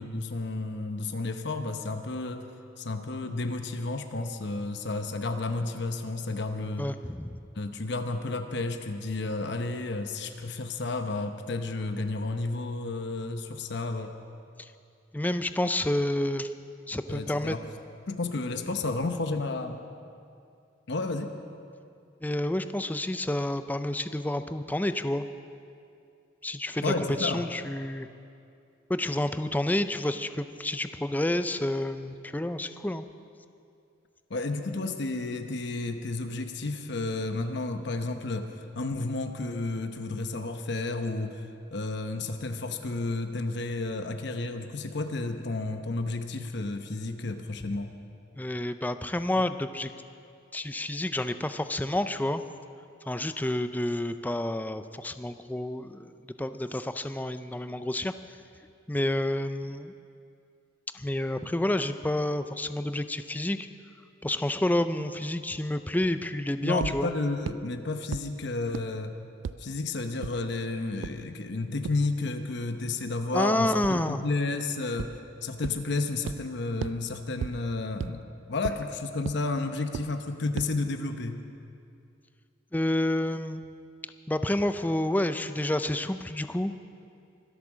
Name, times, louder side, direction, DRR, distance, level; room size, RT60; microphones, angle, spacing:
voice 1, 0.0-2.5 2.8-6.9 7.6-14.1 17.1-17.6 18.1-19.8 20.9-21.3 26.8-27.5 34.3-41.4 41.7-47.9 66.6-69.1 69.6-81.4, left 3 dB, 60° left, 7 dB, 0.8 m, -32 dB
voice 2, 6.8-7.4 14.6-14.7 15.1-16.5 16.9-17.6 22.2-25.2 26.4-28.1 28.9-33.1 48.4-49.9 50.5-52.4 53.1-58.1 58.9-59.9 60.9-63.7 64.2-67.1 73.3-74.2 82.7-83.6 84.3-86.7, left 1 dB, 10° left, 10 dB, 0.4 m, -29 dB
sound 1, 66.8-66.9 67.5-67.6 68.1-68.2 68.7-68.8 69.4-69.5 70.2-70.3 71.0-71.1 71.8-71.9 73.8-73.9 75.0-75.1 75.6-75.7 76.3-76.4 76.8-76.9 77.4-77.5 78.0-78.1 78.6-78.7 79.3-79.4 79.9-80.0 80.6-80.7, right 7 dB, 70° right, 0.3 m, -32 dB
24.0 x 8.4 x 6.2 m, 2.4 s
head